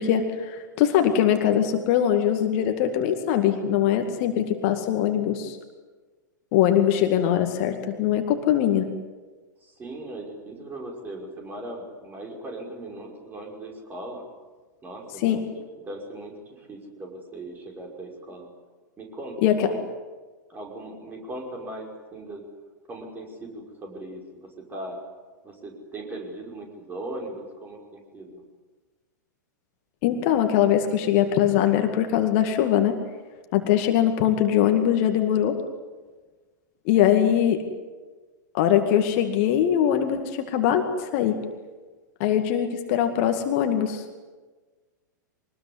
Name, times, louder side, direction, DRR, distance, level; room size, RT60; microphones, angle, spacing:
voice 1, 0.0-5.6 6.5-8.9 15.2-15.4 19.4-19.6 30.0-33.0 33.5-35.6 36.9-37.6 38.5-41.4 42.2-44.0, left 10 dB, 40° left, 6 dB, 2.1 m, -22 dB
voice 2, 9.6-14.2 14.8-18.5 19.0-19.8 20.5-22.4 22.9-25.0 25.4-28.4, right 1 dB, 20° right, 1 dB, 5.6 m, -39 dB
24.0 x 20.0 x 9.7 m, 1.3 s
figure-of-eight pair, 95°, 10 cm